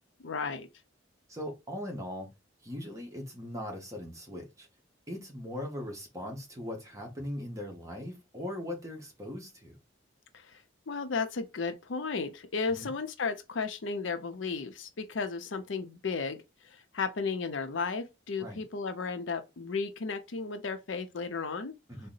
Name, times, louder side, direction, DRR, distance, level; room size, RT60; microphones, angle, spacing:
voice 1, 0.2-0.7 10.3-10.5 10.9-16.4 16.6-21.7, left 4 dB, 75° left, 0.6 m, -34 dB
voice 2, 1.3-2.3 2.6-4.7 5.1-9.8 12.8-12.9 18.4-18.6 21.9-22.1, left 1 dB, 15° right, 1.0 m, -39 dB
3.8 x 2.0 x 3.9 m
head